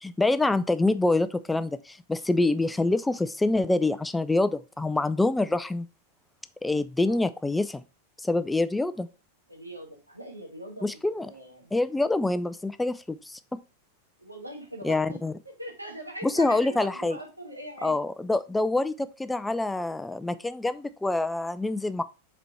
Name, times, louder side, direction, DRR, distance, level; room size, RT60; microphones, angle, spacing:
voice 1, 0.0-5.9 6.6-7.8 8.2-9.1 10.8-11.3 11.7-13.4 14.8-15.3 16.2-17.2 17.8-22.0, left 2 dB, 5° left, 0.3 m, -26 dB
voice 2, 9.5-10.9 11.2-11.7 14.2-15.2 15.4-17.9, right 1 dB, 85° right, 1.5 m, -41 dB
5.1 x 4.3 x 4.4 m
figure-of-eight pair, 90°, 0 cm